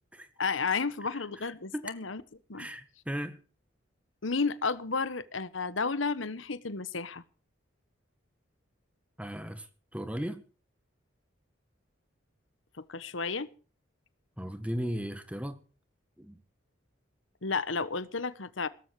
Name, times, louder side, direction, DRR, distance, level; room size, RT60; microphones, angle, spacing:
voice 1, 0.4-2.2 2.5-2.7 4.2-7.2 12.9-13.5 17.4-18.7, left 4 dB, 75° left, 1.2 m, -32 dB
voice 2, 2.6-3.4 9.2-9.7 9.9-10.4 14.4-15.6 16.2-16.4, equal, 5° right, 1.8 m, -36 dB
17.5 x 14.5 x 4.9 m
head